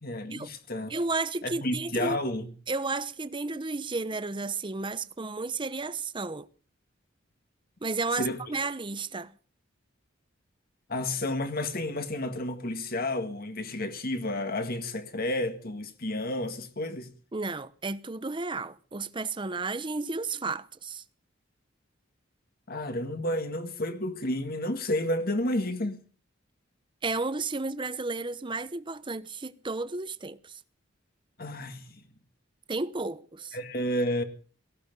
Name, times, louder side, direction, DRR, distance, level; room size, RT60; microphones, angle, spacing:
voice 1, 0.0-0.9 1.4-2.5 8.1-8.4 10.9-17.1 22.7-26.0 31.4-32.0 33.5-34.2, left 1 dB, 50° left, 1.9 m, -31 dB
voice 2, 0.9-2.2 2.7-6.5 7.8-9.3 17.3-21.0 27.0-30.6 32.7-33.6, right 3 dB, 25° right, 0.9 m, -32 dB
18.0 x 14.5 x 5.4 m
head